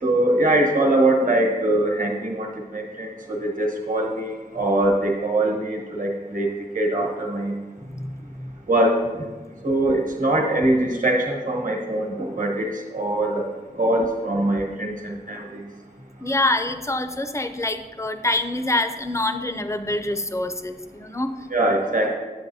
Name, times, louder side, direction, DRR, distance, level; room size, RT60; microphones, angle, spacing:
voice 1, 0.0-7.5 8.7-9.0 9.6-13.4 13.8-15.6 21.5-22.2, right 1 dB, 55° right, 0 dB, 1.2 m, -22 dB
voice 2, 16.2-21.3, left 2 dB, 20° left, 9 dB, 0.5 m, -25 dB
9.4 x 6.9 x 2.7 m, 1.3 s
wide cardioid pair, 55°, 16 cm